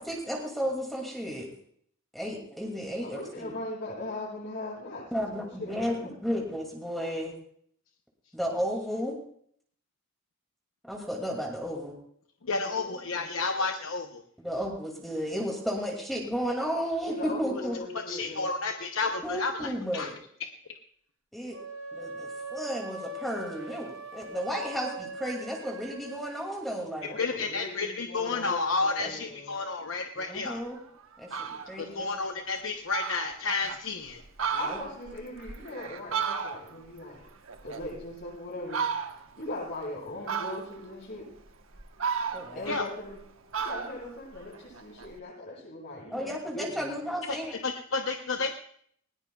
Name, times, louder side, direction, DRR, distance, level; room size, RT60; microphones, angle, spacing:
voice 1, 0.0-1.5 2.1-3.5 5.1-6.0 6.2-7.3 8.3-9.2 10.8-12.0 14.4-17.8 19.2-20.2 21.3-21.6 21.9-27.2 29.0-29.1 30.1-30.8 31.2-32.1 34.6-34.8 42.3-42.7 46.1-47.6, equal, ahead, -1 dB, 2.4 m, -33 dB
voice 2, 3.0-6.1 12.6-13.3 17.1-18.5 27.1-29.5 34.6-37.2 37.6-38.8 39.3-41.2 42.5-43.2 43.6-46.3 46.5-46.8, left 2 dB, 50° left, -7 dB, 8.0 m, -39 dB
voice 3, 12.5-14.2 18.1-20.1 27.2-30.6 31.8-34.2 42.7-42.8 47.3-47.4 47.6-48.5, left 4 dB, 70° left, 4 dB, 0.9 m, -31 dB
sound 1, 21.5-26.5, right 1 dB, 85° right, 7.1 m, -41 dB
Fowl, 30.7-30.8 31.2-31.8 32.2-32.3 32.6-32.7 32.9-33.8 34.2-36.9 37.2-38.3 38.7-39.4 40.3-40.9 41.5-43.2 43.5-45.1, right 6 dB, 65° right, 1.1 m, -34 dB
20.0 x 19.0 x 2.3 m, 0.64 s
head